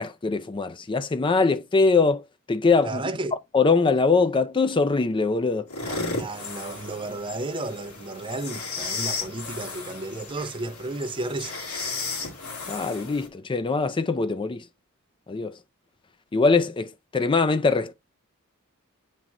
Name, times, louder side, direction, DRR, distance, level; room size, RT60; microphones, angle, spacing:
voice 1, 0.0-3.0 3.5-5.7 12.7-14.6 15.3-15.6 16.3-17.9, left 4 dB, 20° left, 0.4 m, -22 dB
voice 2, 2.8-3.3 5.8-11.6, right 2 dB, 25° right, 0.6 m, -33 dB
sound 1, 5.7-13.3, left 4 dB, 70° left, 2.3 m, -34 dB
8.5 x 3.7 x 2.9 m
head